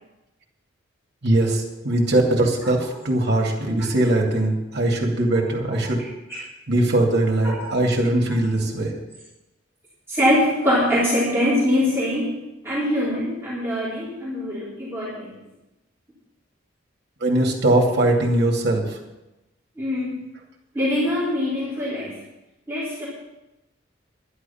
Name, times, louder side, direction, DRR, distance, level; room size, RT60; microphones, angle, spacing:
voice 1, 1.2-6.0 6.7-8.9 17.2-19.0, right 1 dB, 60° right, 0 dB, 2.5 m, -21 dB
voice 2, 10.1-12.3 12.6-15.3 19.8-20.2 20.7-22.2 22.7-23.0, left 1 dB, 15° right, -9 dB, 4.2 m, -23 dB
11.5 x 11.5 x 5.8 m, 0.98 s
head